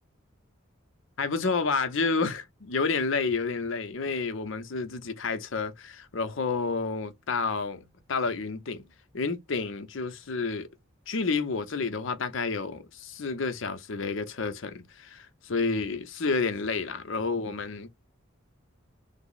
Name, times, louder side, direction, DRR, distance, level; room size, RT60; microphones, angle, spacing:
voice 1, 1.2-8.8 9.1-10.7 11.1-17.9, left 4 dB, 65° left, 0.7 m, -30 dB
3.4 x 2.0 x 3.8 m
head